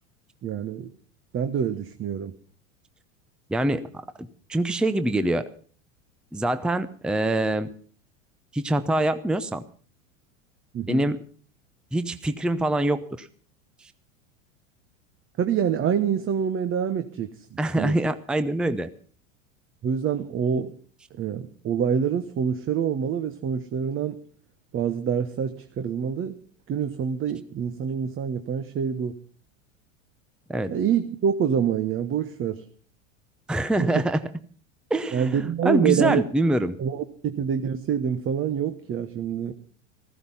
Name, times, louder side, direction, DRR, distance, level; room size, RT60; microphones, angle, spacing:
voice 1, 0.4-0.9 1.3-2.3 10.7-11.1 15.4-18.0 19.8-20.7 21.1-24.2 24.7-26.4 26.7-29.2 30.7-32.6 33.8-34.0 35.1-36.2 36.8-39.5, right 8 dB, 35° right, 9 dB, 1.2 m, -26 dB
voice 2, 3.5-3.9 4.2-5.4 6.3-7.7 8.5-9.6 10.9-11.2 11.9-13.3 13.8-13.9 17.6-18.9 30.5-30.7 33.5-34.2 34.9-36.8, right 1 dB, ahead, 12 dB, 0.7 m, -24 dB
15.0 x 15.0 x 5.6 m, 0.43 s
hypercardioid pair, 100°, 38 cm